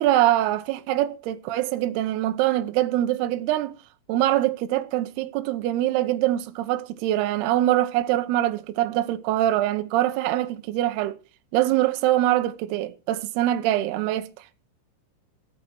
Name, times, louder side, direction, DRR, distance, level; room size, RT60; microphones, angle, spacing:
voice 1, 0.0-3.7 4.1-11.2 11.5-14.3, right 14 dB, 85° right, 2.3 m, -23 dB
15.5 x 8.5 x 6.1 m
omnidirectional pair, 6.0 m